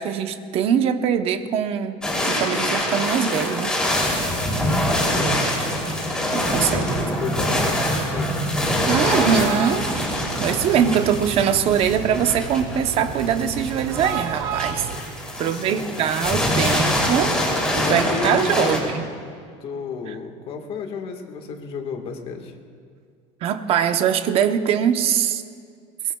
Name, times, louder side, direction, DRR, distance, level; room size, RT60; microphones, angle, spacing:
voice 1, 0.0-2.0 2.3-3.7 6.3-7.0 8.9-9.9 10.4-14.9 15.4-17.3 17.8-19.0 20.1-20.2 23.4-25.4, right 8 dB, 45° right, 8 dB, 0.9 m, -22 dB
sound 1, 2.0-18.8, left 1 dB, 5° left, 3.0 m, -24 dB
voice 2, 4.9-5.5 6.5-8.3 8.7-9.3 15.4-16.0 17.6-19.0 19.6-22.5, left 5 dB, 45° left, 4 dB, 1.6 m, -32 dB
sound 2, 8.4-15.0, right 6 dB, 80° right, 1.5 m, -32 dB
22.0 x 21.5 x 2.3 m, 2.2 s
cardioid pair, 150°, 14 cm